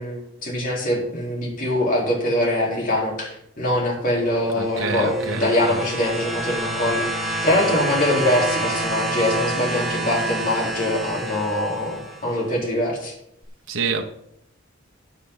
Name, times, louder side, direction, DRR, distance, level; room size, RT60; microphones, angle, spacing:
voice 1, 0.0-13.1, left 1 dB, 45° left, 4.1 m, -23 dB
voice 2, 4.5-5.8 13.7-14.0, right 4 dB, 80° right, 1.2 m, -27 dB
sound 1, 4.6-12.4 13.4-13.5, right 2 dB, ahead, 1.9 m, -28 dB
13.5 x 8.4 x 4.0 m
head